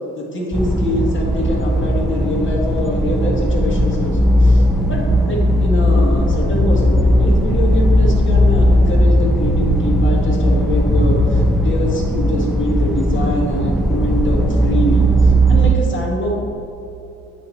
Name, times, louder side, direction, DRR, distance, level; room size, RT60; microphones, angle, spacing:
voice 1, 0.1-16.3, left 1 dB, 40° left, -2 dB, 1.7 m, -24 dB
sound 1, 0.5-15.7, equal, ahead, 0.5 m, -16 dB
9.0 x 4.2 x 4.2 m, 2.7 s
cardioid pair, 90°, 30 cm